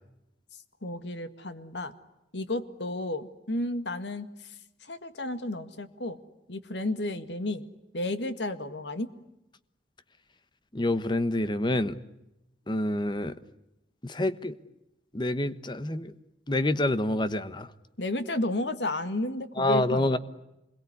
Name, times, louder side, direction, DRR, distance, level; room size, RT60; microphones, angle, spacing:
voice 1, 0.8-1.9 2.3-4.3 4.8-6.2 6.5-7.7 7.9-9.1 18.0-20.2, left 1 dB, 85° left, 10 dB, 2.0 m, -32 dB
voice 2, 10.7-12.0 12.7-13.3 14.0-14.5 15.1-16.1 16.5-17.7 19.6-20.2, left 1 dB, 25° left, 13 dB, 1.1 m, -27 dB
27.5 x 22.0 x 9.8 m, 0.91 s
head